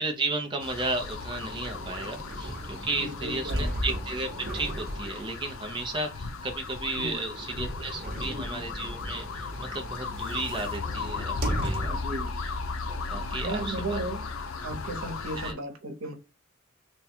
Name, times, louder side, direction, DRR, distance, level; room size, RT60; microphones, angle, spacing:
voice 1, 0.0-4.3 4.5-12.0 12.4-12.5 12.9-14.0 15.4-15.6, right 2 dB, 25° right, 0.5 m, -34 dB
sound 1, 0.6-15.5, left 4 dB, 75° left, 0.6 m, -36 dB
sound 2, 1.2-12.2 12.7-12.8 14.2-15.1, right 1 dB, 45° right, 1.0 m, -37 dB
voice 2, 3.0-3.8 6.9-7.2 8.1-8.7 11.8-12.4 13.4-14.3 14.6-16.1, right 2 dB, 90° right, 0.9 m, -35 dB
3.4 x 2.3 x 4.2 m
head